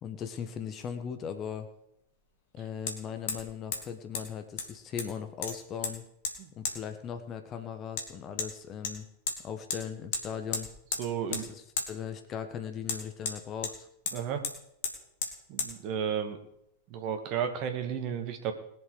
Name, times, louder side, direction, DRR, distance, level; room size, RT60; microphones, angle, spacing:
voice 1, 0.0-1.7 2.5-6.0 6.6-9.1 9.4-10.7 11.3-13.9, left 8 dB, 30° left, 8 dB, 1.4 m, -38 dB
Hammer, 0.9-1.0 2.9-3.0 3.3-3.5 3.7-3.8 4.1-4.2 4.6-5.1 5.4-5.9 6.2-6.3 6.6-6.8 8.0-8.1 8.4-8.5 8.8-9.4 9.7-9.8 10.1-10.2 10.5-11.0 11.3-11.5 11.8-11.9 12.9-13.7 14.1-14.2 14.4-14.5 14.8-14.9 15.2-15.3 15.6-15.7, left 5 dB, 55° left, 2.3 m, -33 dB
voice 2, 11.0-11.5 14.1-14.4 15.5-16.4 16.9-18.5, right 8 dB, 40° right, 6 dB, 2.0 m, -33 dB
20.5 x 7.4 x 5.1 m, 0.75 s
figure-of-eight pair, 90°, 0 cm